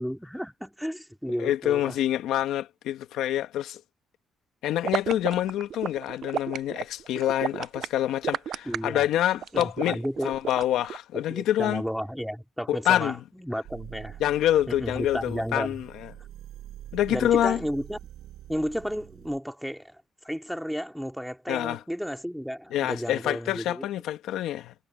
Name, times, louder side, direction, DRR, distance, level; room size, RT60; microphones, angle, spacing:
voice 1, 0.0-2.0 8.7-9.0 9.5-10.4 11.1-14.2 14.7-15.8 17.1-18.0 18.5-23.9, equal, ahead, 2.4 m, -33 dB
voice 2, 1.4-3.8 4.6-10.0 10.2-11.8 12.7-13.1 14.2-15.9 16.9-17.6 21.5-21.8 22.7-24.7, left 12 dB, 85° left, 1.6 m, -26 dB
sound 1, 4.8-11.0, right 9 dB, 65° right, 0.3 m, -32 dB
sound 2, 13.6-19.4, right 12 dB, 80° right, 7.8 m, -45 dB
cardioid pair, 90°, 0 cm